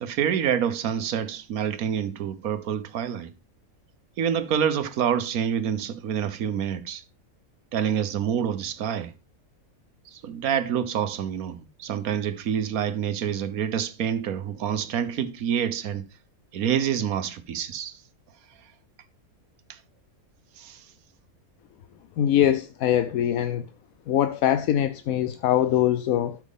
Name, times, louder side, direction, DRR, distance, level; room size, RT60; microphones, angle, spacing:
voice 1, 0.0-3.3 4.2-7.0 7.7-9.1 10.1-16.0 16.5-18.0 20.6-20.8, right 8 dB, 80° right, 1.3 m, -27 dB
voice 2, 22.2-23.6 24.1-26.4, left 11 dB, 80° left, 1.0 m, -23 dB
12.0 x 6.2 x 3.5 m
omnidirectional pair, 1.5 m